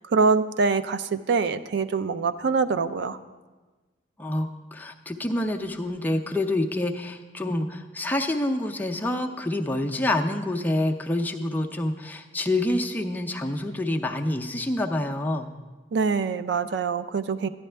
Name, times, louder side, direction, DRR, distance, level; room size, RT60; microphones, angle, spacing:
voice 1, 0.1-3.2 15.9-17.5, right 4 dB, 65° right, 13 dB, 0.4 m, -24 dB
voice 2, 4.2-15.5, left 1 dB, 10° left, 3 dB, 0.5 m, -27 dB
11.5 x 10.0 x 3.3 m, 1.3 s
head